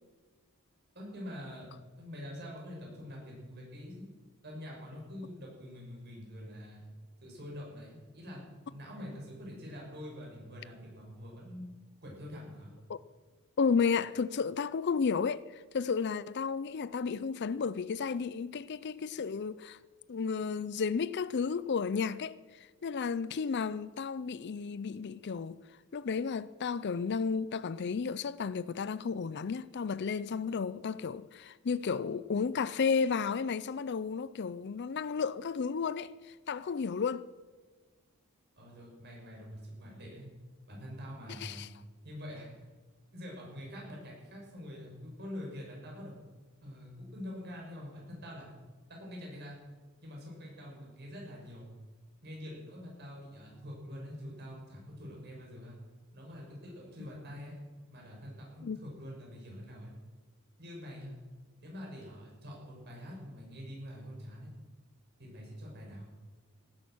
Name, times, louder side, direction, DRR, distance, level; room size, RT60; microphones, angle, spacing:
voice 1, 0.9-1.7 1.9-4.0 4.4-6.8 7.2-8.4 8.7-11.6 12.0-12.7 38.6-40.3 40.7-41.7 42.0-42.7 43.1-46.2 46.6-48.5 48.9-49.6 50.0-51.7 52.2-55.8 56.1-57.6 57.9-59.9 60.6-61.2 61.6-64.5 65.2-66.1, equal, 50° right, 6.1 m, -45 dB
voice 2, 13.6-19.8 20.1-22.4 22.8-25.6 25.9-37.3 41.3-41.7 58.6-58.8, left 5 dB, 50° left, 0.4 m, -33 dB
18.0 x 10.5 x 6.1 m
head